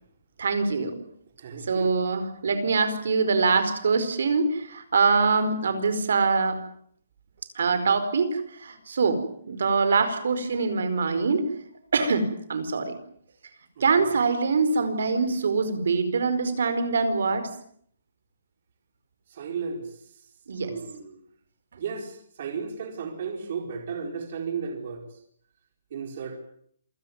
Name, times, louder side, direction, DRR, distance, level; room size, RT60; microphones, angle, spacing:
voice 1, 0.4-1.0 1.6-6.6 7.5-11.5 11.9-12.9 13.8-17.5 20.5-20.7, right 4 dB, 65° right, 11 dB, 4.8 m, -24 dB
voice 2, 1.4-1.9 13.8-14.1 19.3-20.0 20.6-21.2 21.8-25.0 25.9-26.4, right 6 dB, 40° right, 4 dB, 4.6 m, -34 dB
27.5 x 17.0 x 9.5 m, 0.65 s
hypercardioid pair, 175°, 0 cm